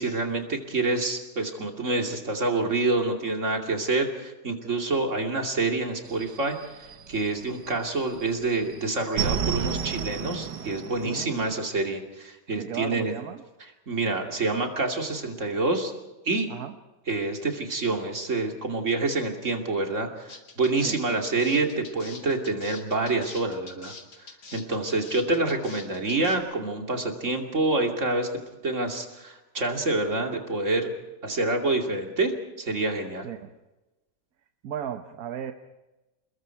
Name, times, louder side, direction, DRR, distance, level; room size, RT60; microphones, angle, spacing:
voice 1, 0.0-6.6 7.1-13.1 13.9-15.9 16.2-16.5 17.1-20.3 20.6-23.9 24.5-28.3 28.6-30.9 31.2-32.3 32.6-33.3, right 3 dB, 45° right, 3 dB, 3.0 m, -27 dB
sound 1, 6.1-7.8 8.1-11.6, right 7 dB, 80° right, 1.9 m, -31 dB
voice 2, 11.0-11.3 12.5-13.4 16.5-16.7 20.8-21.0 33.2-33.5 34.6-35.5, right 9 dB, 65° right, 8 dB, 1.5 m, -35 dB
sound 2, 20.3-26.4, left 4 dB, 80° left, 3.0 m, -44 dB
29.5 x 21.0 x 4.6 m, 1.0 s
omnidirectional pair, 1.8 m